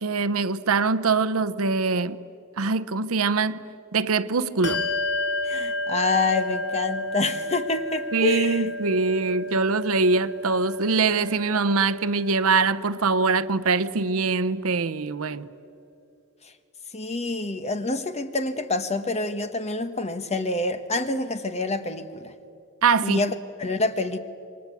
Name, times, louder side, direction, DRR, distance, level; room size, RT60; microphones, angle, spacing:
voice 1, 0.0-2.2 2.6-3.6 3.9-4.8 8.1-15.5 22.8-23.2, right 4 dB, 65° right, 0.7 m, -23 dB
Bell, 4.6-14.6, left 2 dB, 50° left, 1.7 m, -32 dB
voice 2, 5.4-8.7 16.4-16.5 16.9-22.3 23.0-24.2, left 2 dB, 30° left, 1.2 m, -27 dB
27.0 x 22.5 x 8.4 m
head